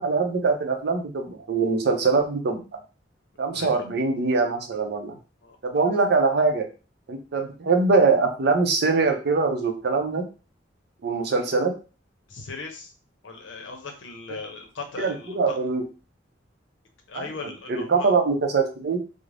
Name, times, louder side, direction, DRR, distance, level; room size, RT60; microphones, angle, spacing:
voice 1, 0.0-2.6 3.4-5.2 5.6-6.7 7.1-10.3 11.0-11.7 15.0-15.8 17.7-19.0, right 4 dB, 60° right, 4 dB, 0.5 m, -23 dB
voice 2, 3.5-3.9 5.4-5.6 12.3-12.9 13.2-15.6 17.1-18.1, left 4 dB, 75° left, 3 dB, 0.6 m, -38 dB
2.5 x 2.0 x 3.2 m, 0.33 s
head